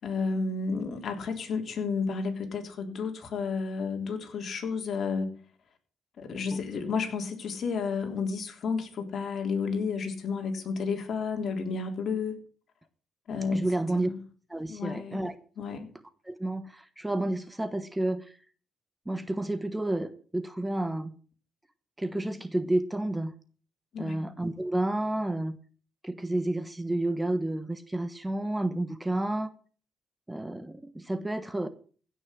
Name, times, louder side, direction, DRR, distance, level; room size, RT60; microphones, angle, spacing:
voice 1, 0.0-5.3 6.2-12.4 13.3-13.6 14.0-14.2 14.7-15.2 15.6-15.9 23.9-24.2, left 5 dB, 55° left, 4 dB, 3.5 m, -31 dB
voice 2, 13.5-14.1 14.5-15.4 16.2-18.4 19.1-21.1 22.0-23.3 24.0-25.6 26.0-29.5 30.3-31.7, right 1 dB, 10° right, 12 dB, 1.1 m, -30 dB
16.0 x 6.3 x 7.6 m, 0.42 s
cardioid pair, 90°, 0 cm